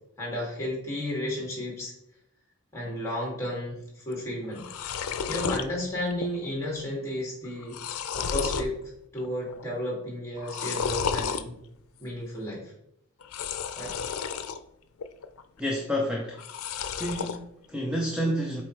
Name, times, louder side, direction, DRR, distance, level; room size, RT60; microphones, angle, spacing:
voice 1, 0.2-1.9 2.7-4.7 5.3-8.8 9.1-11.6 12.0-12.7 13.8-14.0, left 1 dB, 15° left, -3 dB, 2.4 m, -33 dB
sound 1, 4.1-4.2 4.4-5.7 6.1-6.5 6.8-6.9 7.4-8.7 9.2-9.6 10.4-11.4 13.2-14.6 15.0-15.6 16.3-17.4, left 6 dB, 90° left, 0.5 m, -32 dB
voice 2, 15.6-16.4 16.8-18.6, equal, 5° right, -1 dB, 0.7 m, -29 dB
7.8 x 4.4 x 3.2 m, 0.76 s
head